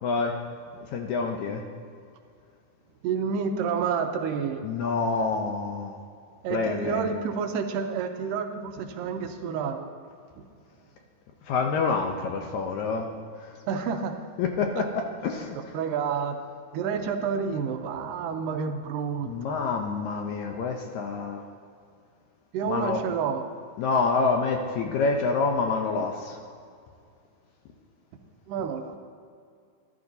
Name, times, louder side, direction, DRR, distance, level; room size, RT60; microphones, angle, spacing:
voice 1, 0.0-0.3 0.9-1.6 4.6-6.0 6.5-7.1 11.5-13.1 14.4-15.6 19.3-21.4 22.7-23.0 23.8-26.4, left 4 dB, 75° left, 3 dB, 1.8 m, -27 dB
voice 2, 3.0-4.7 6.4-9.9 10.4-10.5 13.7-14.2 14.8-14.9 15.7-16.4 16.7-19.6 22.5-23.4 28.5-29.0, right 6 dB, 85° right, 6 dB, 2.3 m, -29 dB
13.0 x 12.5 x 2.7 m, 2.2 s
omnidirectional pair, 3.9 m